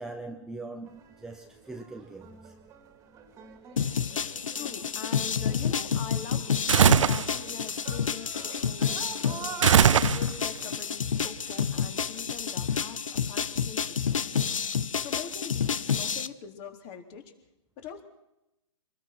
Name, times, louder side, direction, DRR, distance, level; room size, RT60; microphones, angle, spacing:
voice 1, 0.0-2.5, right 3 dB, 5° right, 1.0 m, -41 dB
sound 1, 0.9-10.0, right 7 dB, 20° right, 2.6 m, -45 dB
sound 2, 3.8-16.3, left 7 dB, 85° left, 1.2 m, -29 dB
voice 2, 4.5-9.4 10.1-14.4 15.0-17.3 17.8-18.0, left 7 dB, 35° left, 3.9 m, -43 dB
sound 3, 6.7-7.3 9.6-10.6, right 8 dB, 70° right, 0.9 m, -20 dB
27.0 x 20.0 x 6.2 m
hypercardioid pair, 140°, 16 cm